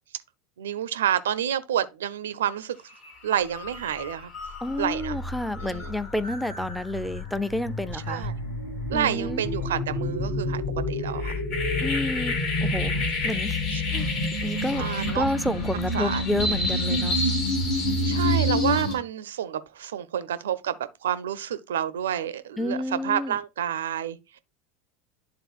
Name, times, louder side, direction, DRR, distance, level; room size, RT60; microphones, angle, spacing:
voice 1, 0.6-2.8 3.2-4.3 4.8-5.2 5.6-5.9 7.9-8.4 8.9-11.3 12.6-13.0 13.7-13.8 14.7-15.3 15.9-16.5 18.0-24.4, right 10 dB, 70° right, 0.4 m, -29 dB
sound 1, 2.9-3.1 3.5-18.9, left 1 dB, 50° left, 3.3 m, -28 dB
voice 2, 4.6-8.3 8.9-9.4 11.8-12.3 12.6-13.6 13.9-14.1 14.4-14.9 15.1-17.2 22.6-23.3, left 1 dB, ahead, 0.5 m, -30 dB
11.5 x 3.8 x 2.4 m
figure-of-eight pair, 80°, 0 cm